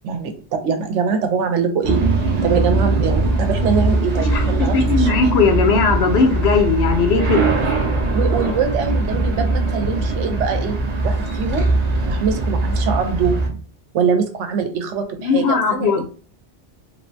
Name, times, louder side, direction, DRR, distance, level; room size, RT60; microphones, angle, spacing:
voice 1, 0.0-2.0 2.4-5.1 8.1-10.7 11.0-11.7 12.0-13.6 13.9-16.0, right 6 dB, 80° right, 6 dB, 0.9 m, -23 dB
sound 1, 1.8-13.5, right 2 dB, 55° right, 0.4 m, -20 dB
sound 2, 4.2-10.9, right 1 dB, 40° right, 0.8 m, -38 dB
voice 2, 4.3-7.5 15.2-16.0, left 5 dB, 65° left, 4 dB, 0.8 m, -18 dB
3.1 x 2.1 x 2.5 m, 0.37 s
omnidirectional pair, 1.2 m